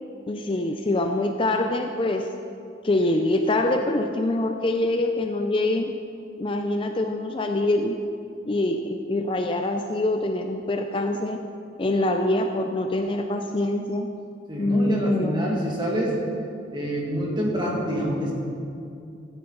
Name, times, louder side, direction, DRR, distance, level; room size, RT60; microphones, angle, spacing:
voice 1, 0.3-2.3 2.8-5.9 6.4-8.0 8.5-11.4 11.8-14.1 14.6-15.5, left 1 dB, 30° left, 5 dB, 0.4 m, -24 dB
voice 2, 14.5-16.2 16.7-18.3, equal, 25° right, -3 dB, 2.0 m, -26 dB
13.0 x 10.0 x 3.9 m, 2.5 s
head